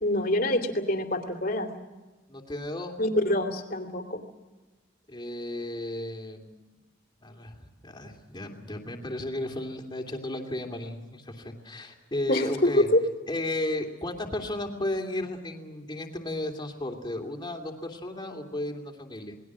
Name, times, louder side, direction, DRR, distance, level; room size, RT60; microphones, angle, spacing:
voice 1, 0.0-1.7 3.0-4.2 12.3-13.0, left 1 dB, 45° left, 4 dB, 2.7 m, -25 dB
voice 2, 2.3-2.9 5.1-6.7 7.2-12.9 13.3-19.4, left 1 dB, 20° left, 2 dB, 2.8 m, -34 dB
28.0 x 20.5 x 6.3 m, 1.2 s
head